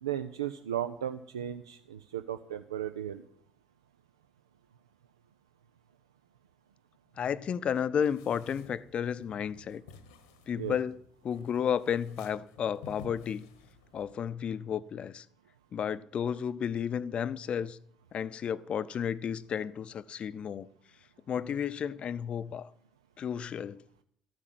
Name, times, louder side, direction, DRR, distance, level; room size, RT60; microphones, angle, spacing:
voice 1, 0.0-3.2 10.6-10.8, right 10 dB, 80° right, 0.4 m, -35 dB
voice 2, 7.2-9.8 10.5-11.0 11.2-13.4 13.9-15.3 15.7-17.8 18.1-20.7 21.3-22.7 23.2-23.8, left 8 dB, 45° left, 0.6 m, -32 dB
sound 1, 8.0-14.2, left 3 dB, 75° left, 1.1 m, -53 dB
13.0 x 9.6 x 7.5 m
figure-of-eight pair, 50°, 3 cm